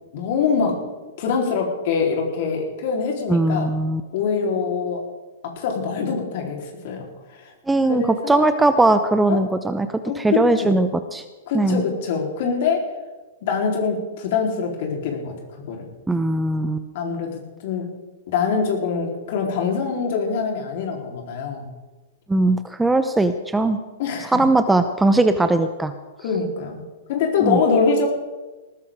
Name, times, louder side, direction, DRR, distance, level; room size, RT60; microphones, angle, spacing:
voice 1, 0.1-0.8 1.2-3.7 4.1-5.0 5.4-7.1 7.9-8.4 9.3-9.4 10.0-10.8 11.5-12.9 13.4-15.3 15.7-15.9 16.9-17.9 18.3-21.6 23.7-24.4 26.2-26.8 27.1-28.1, left 5 dB, 55° left, 1 dB, 3.8 m, -24 dB
voice 2, 3.3-4.0 7.7-9.9 10.2-11.2 11.5-11.8 16.1-16.8 22.3-23.8 24.3-25.9 27.4-27.6, right 2 dB, 10° right, 10 dB, 0.8 m, -19 dB
19.5 x 14.0 x 3.7 m, 1.2 s
hypercardioid pair, 110°, 0 cm